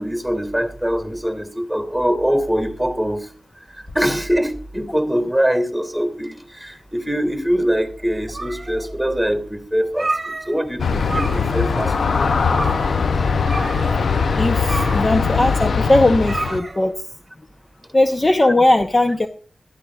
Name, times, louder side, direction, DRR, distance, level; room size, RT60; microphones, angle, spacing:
voice 1, 0.0-3.3 3.9-12.5, equal, ahead, 6 dB, 2.6 m, -23 dB
sound 1, 8.1-9.0 9.4-9.5 9.8-10.8 11.0-11.7 11.9-12.0 12.5-13.0 13.4-17.0, right 2 dB, 30° right, 1.3 m, -30 dB
Aircraft, 10.8-16.6, left 5 dB, 80° left, 0.7 m, -20 dB
voice 2, 14.4-17.0 17.9-19.3, left 1 dB, 30° left, 6 dB, 0.9 m, -18 dB
21.0 x 14.0 x 2.5 m, 0.41 s
wide cardioid pair, 100°, 0 cm